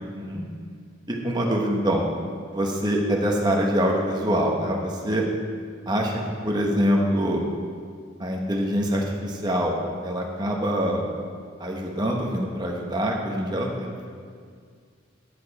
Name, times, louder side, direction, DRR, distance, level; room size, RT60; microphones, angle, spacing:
voice 1, 0.1-0.4 1.1-2.0 2.5-5.2 5.9-7.4 8.2-11.0 11.6-14.1, equal, 20° right, 0 dB, 1.2 m, -25 dB
13.0 x 7.0 x 4.2 m, 2.1 s
head